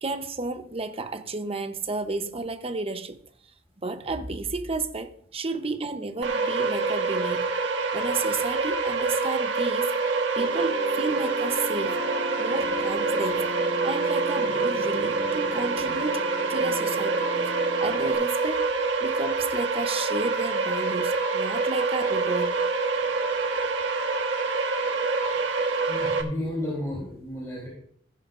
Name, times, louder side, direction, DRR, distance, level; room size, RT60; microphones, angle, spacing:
voice 1, 0.0-3.2 3.8-7.5 7.9-10.0 10.4-12.0 12.4-13.5 13.8-18.6 19.0-22.6, right 3 dB, 30° right, 0.9 m, -32 dB
sound 1, 6.2-26.2, right 4 dB, 90° right, 1.3 m, -26 dB
sound 2, 10.4-18.2, left 2 dB, 10° right, 5.1 m, -38 dB
voice 2, 25.9-27.7, left 1 dB, 20° left, 3.6 m, -32 dB
15.5 x 10.5 x 2.6 m
head